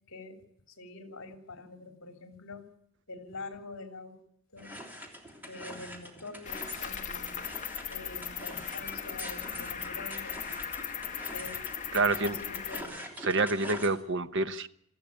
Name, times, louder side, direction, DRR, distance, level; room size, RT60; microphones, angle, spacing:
voice 1, 0.7-2.6 3.1-4.2 4.5-4.7 5.5-7.5 7.8-10.6 11.3-11.6 12.0-13.0, left 3 dB, 60° left, 3.1 m, -45 dB
sound 1, 4.6-13.9, equal, 10° right, 3.2 m, -45 dB
Cricket, 6.5-12.8, left 8 dB, 35° left, 1.4 m, -38 dB
voice 2, 11.9-12.4 13.2-14.7, right 3 dB, 55° right, 0.9 m, -27 dB
24.0 x 14.5 x 8.4 m
head